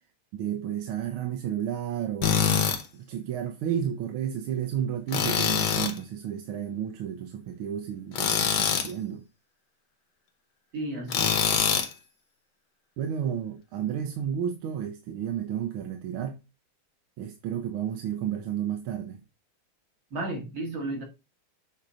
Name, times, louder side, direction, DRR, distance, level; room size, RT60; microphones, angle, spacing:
voice 1, 0.3-2.4 2.9-9.2 13.0-16.4 17.2-19.2, right 9 dB, 90° right, 1.6 m, -32 dB
Tools, 2.2-2.8 5.1-6.0 8.1-8.9 11.1-11.9, left 7 dB, 80° left, 1.8 m, -24 dB
voice 2, 10.7-11.8 20.1-21.0, right 2 dB, 70° right, 3.0 m, -34 dB
7.8 x 2.8 x 4.8 m
omnidirectional pair, 2.2 m